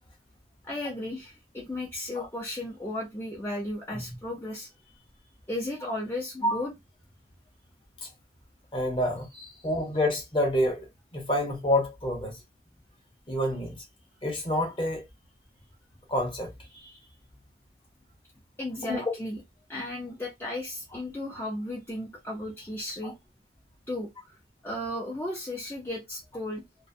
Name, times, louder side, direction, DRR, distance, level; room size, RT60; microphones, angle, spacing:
voice 1, 0.6-5.0 5.5-6.7 9.3-9.7 18.6-19.4 19.7-23.1 23.9-24.4 24.6-26.6, left 1 dB, 15° left, 0.4 m, -35 dB
voice 2, 8.7-9.3 9.6-10.9 11.1-12.3 13.3-13.8 14.2-15.0 16.1-16.5 18.9-19.0, left 1 dB, 30° left, 0.8 m, -27 dB
2.4 x 2.0 x 2.5 m
head